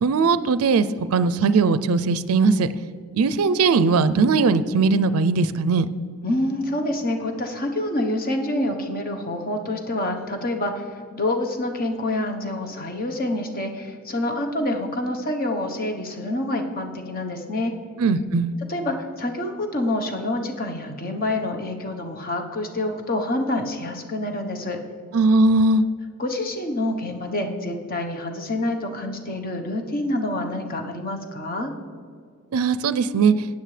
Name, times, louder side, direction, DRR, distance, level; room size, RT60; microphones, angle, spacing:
voice 1, 0.0-2.7 3.1-5.9 18.0-18.6 25.1-25.8 32.5-33.3, right 4 dB, 70° right, 14 dB, 0.4 m, -19 dB
voice 2, 6.2-17.7 18.7-24.8 26.2-31.7, left 1 dB, 40° left, 4 dB, 1.0 m, -27 dB
15.5 x 9.4 x 3.3 m, 2.1 s
head